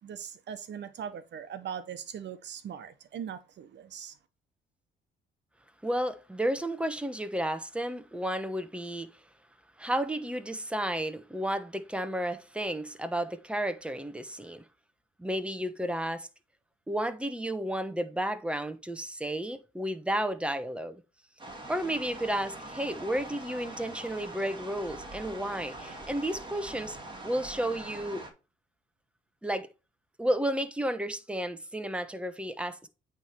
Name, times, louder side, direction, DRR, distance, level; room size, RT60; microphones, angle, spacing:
voice 1, 0.0-4.2, right 8 dB, 65° right, 1.1 m, -40 dB
voice 2, 5.8-9.1 9.8-14.6 15.2-16.3 16.9-21.0 21.7-27.0 27.2-28.3 29.4-29.7 30.2-32.9, right 1 dB, 5° right, 1.0 m, -32 dB
sound 1, 21.4-28.3, right 2 dB, 25° right, 2.1 m, -43 dB
9.0 x 3.5 x 4.5 m
cardioid pair, 90°, 20 cm